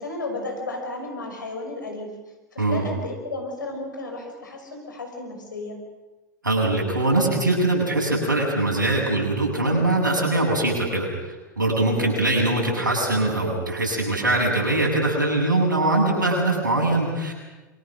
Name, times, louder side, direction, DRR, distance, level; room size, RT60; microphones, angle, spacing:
voice 1, 0.0-2.1 2.5-5.8 11.8-12.4, left 2 dB, 80° left, 2 dB, 5.9 m, -33 dB
voice 2, 6.4-11.1 11.6-17.3, right 2 dB, 80° right, -1 dB, 8.0 m, -22 dB
27.5 x 24.0 x 6.4 m, 1.2 s
figure-of-eight pair, 85°, 10 cm